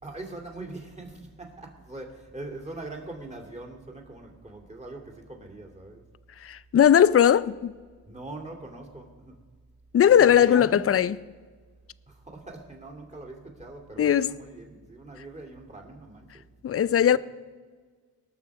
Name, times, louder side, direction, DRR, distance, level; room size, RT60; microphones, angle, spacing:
voice 1, 0.0-6.1 8.1-9.3 10.2-11.0 12.1-16.8, right 2 dB, 20° right, 2.7 m, -42 dB
voice 2, 6.4-7.8 9.9-11.2 14.0-14.3 16.6-17.2, left 9 dB, 40° left, 0.5 m, -19 dB
19.0 x 6.4 x 4.8 m
cardioid pair, 60°, 38 cm